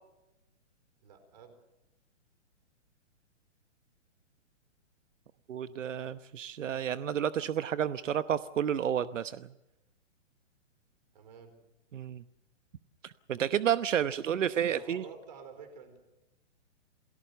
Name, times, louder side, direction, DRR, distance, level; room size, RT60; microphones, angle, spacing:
voice 1, 1.0-1.5 11.1-11.5 14.6-16.0, right 5 dB, 35° right, 8 dB, 4.5 m, -50 dB
voice 2, 5.5-9.5 11.9-12.2 13.0-15.0, right 9 dB, 85° right, 13 dB, 1.0 m, -31 dB
28.0 x 18.0 x 6.8 m, 0.92 s
hypercardioid pair, 180°, 37 cm